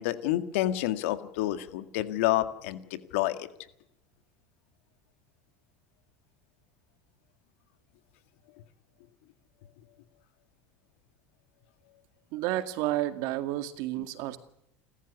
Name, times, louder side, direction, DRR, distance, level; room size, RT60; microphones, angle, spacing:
voice 1, 0.0-3.5, left 14 dB, 80° left, 11 dB, 1.9 m, -29 dB
voice 2, 12.3-14.4, right 15 dB, 65° right, 10 dB, 2.1 m, -31 dB
29.5 x 13.5 x 8.4 m, 0.79 s
supercardioid pair, 125°, 7 cm